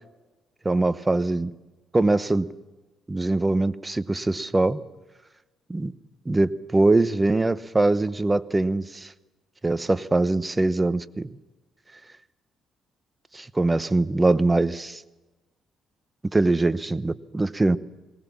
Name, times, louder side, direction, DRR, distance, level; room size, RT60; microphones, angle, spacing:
voice 1, 0.6-1.5 1.9-2.5 3.1-4.8 5.7-5.9 6.3-9.1 9.6-11.3 13.3-15.0 16.3-17.8, right 2 dB, 15° right, 15 dB, 0.9 m, -22 dB
20.0 x 19.0 x 7.2 m, 1.1 s
cardioid pair, 90°, 0 cm